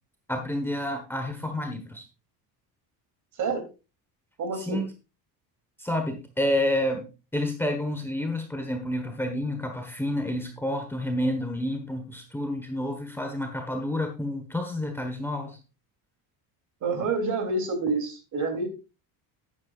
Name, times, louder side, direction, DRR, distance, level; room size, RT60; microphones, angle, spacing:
voice 1, 0.3-2.0 4.6-4.9 5.8-7.1 7.3-15.6, left 1 dB, 5° left, 3 dB, 1.3 m, -29 dB
voice 2, 4.4-4.8 16.8-18.7, right 3 dB, 50° right, 5 dB, 3.3 m, -28 dB
11.5 x 9.8 x 2.5 m, 0.31 s
cardioid pair, 155°, 39 cm